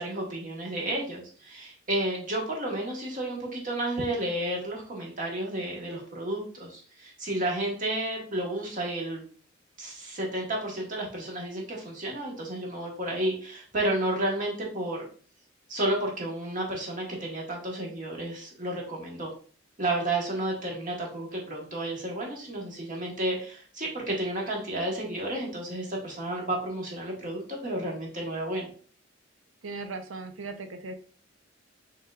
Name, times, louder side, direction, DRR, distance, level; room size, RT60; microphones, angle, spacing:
voice 1, 0.0-9.2 9.8-15.1 15.7-19.3 19.8-28.7, right 1 dB, 40° right, -1 dB, 1.3 m, -31 dB
voice 2, 29.6-31.0, right 3 dB, 80° right, 7 dB, 0.6 m, -38 dB
5.5 x 3.5 x 2.4 m, 0.43 s
head